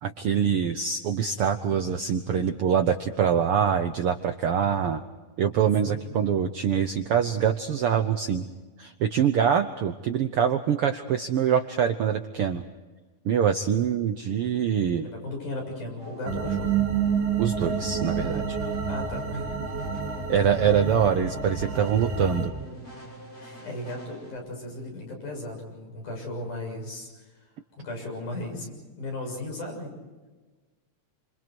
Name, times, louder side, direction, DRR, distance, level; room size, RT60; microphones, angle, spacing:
voice 1, 0.0-5.0 5.4-8.5 8.8-12.6 13.2-15.1 17.4-18.6 20.3-22.5, right 8 dB, 75° right, 8 dB, 1.3 m, -24 dB
voice 2, 5.8-6.2 15.0-16.7 18.9-19.6 23.4-27.4 27.8-29.9, left 2 dB, 75° left, 1 dB, 8.4 m, -36 dB
sound 1, 16.0-24.3, left 1 dB, 30° left, 6.6 m, -44 dB
sound 2, 16.3-22.5, right 6 dB, 50° right, 3.6 m, -29 dB
29.0 x 27.0 x 4.6 m, 1.3 s
omnidirectional pair, 3.6 m